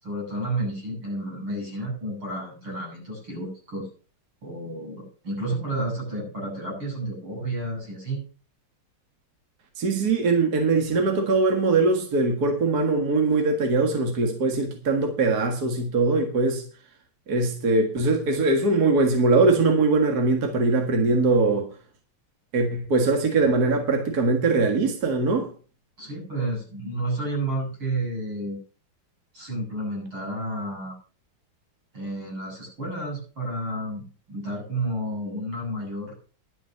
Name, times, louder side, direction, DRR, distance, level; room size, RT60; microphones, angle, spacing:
voice 1, 0.0-3.9 4.4-8.2 26.0-28.6 29.3-31.0 31.9-36.1, right 1 dB, 85° right, 7.8 m, -31 dB
voice 2, 9.8-16.6 17.3-21.7 22.5-25.5, right 3 dB, 50° right, 2.2 m, -21 dB
11.5 x 7.7 x 6.3 m
omnidirectional pair, 2.3 m